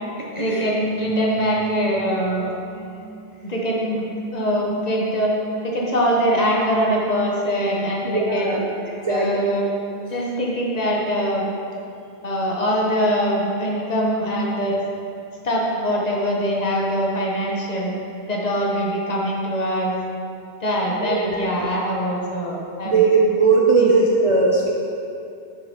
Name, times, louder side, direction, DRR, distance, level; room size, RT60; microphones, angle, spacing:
voice 1, 0.4-2.9 3.4-4.1 4.3-5.3 5.6-8.6 9.1-9.7 10.1-11.4 12.2-14.8 15.4-17.9 18.3-20.0 20.6-23.0 23.8-23.9, equal, 45° left, -3 dB, 0.9 m, -23 dB
voice 2, 8.0-8.7 9.0-9.4 21.0-21.7 22.8-24.7, right 4 dB, 50° right, -3 dB, 0.4 m, -19 dB
7.5 x 4.9 x 2.8 m, 2.6 s
omnidirectional pair, 1.1 m